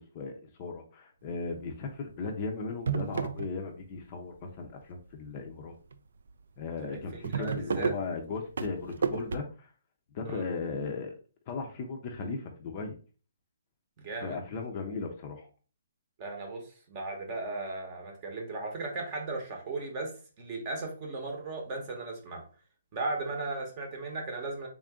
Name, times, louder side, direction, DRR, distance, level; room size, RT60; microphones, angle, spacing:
voice 1, 0.1-5.8 6.6-9.7 10.1-11.2 11.5-13.0 14.2-15.5, left 4 dB, 30° left, 4 dB, 0.5 m, -37 dB
sound 1, 1.5-1.8 2.3-2.4 2.7-4.0 4.3-4.9 5.5-5.6 5.9-6.0 6.3-6.4 6.7-9.4, right 6 dB, 70° right, 0.3 m, -32 dB
voice 2, 6.9-7.9 10.2-10.5 14.0-14.4 16.2-22.5 22.9-24.7, right 3 dB, 25° right, 2 dB, 0.8 m, -36 dB
3.6 x 2.5 x 3.4 m, 0.36 s
hypercardioid pair, 170°, 0 cm